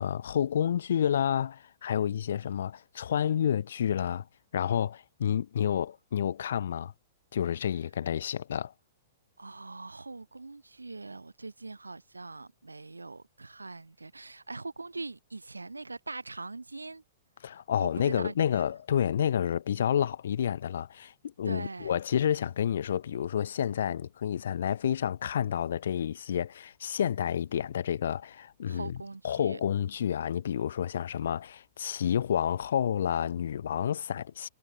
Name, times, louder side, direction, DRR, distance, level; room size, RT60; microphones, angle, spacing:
voice 1, 0.0-4.3 4.5-6.9 7.3-8.7 17.4-29.0 29.2-34.5, left 9 dB, 65° left, 3.0 m, -29 dB
voice 2, 9.4-17.0 17.8-18.6 21.4-22.0 28.7-29.6, right 3 dB, 90° right, 7.0 m, -42 dB
figure-of-eight pair, 110°, 0 cm